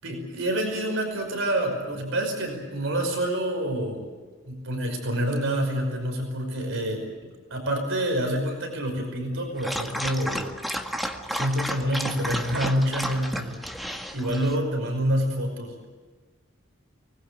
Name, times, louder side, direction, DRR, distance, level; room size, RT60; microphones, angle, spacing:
voice 1, 0.0-4.1 4.5-7.1 7.5-10.5 11.3-13.6 14.1-15.8, right 1 dB, 70° right, 3 dB, 5.6 m, -27 dB
Dog, 9.6-14.6, equal, ahead, 1.7 m, -32 dB
24.5 x 20.5 x 8.3 m, 1.4 s
head